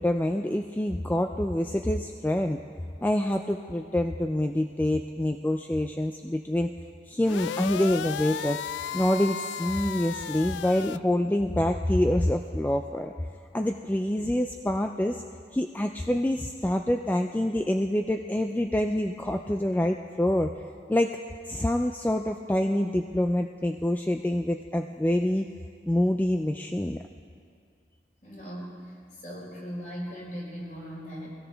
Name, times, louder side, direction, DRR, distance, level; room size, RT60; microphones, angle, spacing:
voice 1, 0.0-2.6 3.0-6.7 7.1-8.6 8.9-13.1 13.5-15.2 15.5-20.5 20.9-21.2 21.5-25.5 25.9-27.0, left 1 dB, 10° left, 5 dB, 0.3 m, -26 dB
sound 1, 7.2-11.0, left 8 dB, 90° left, 0.3 m, -34 dB
voice 2, 28.2-28.9 29.2-31.4, equal, 45° left, -4 dB, 4.4 m, -38 dB
22.5 x 17.0 x 3.5 m, 2.3 s
head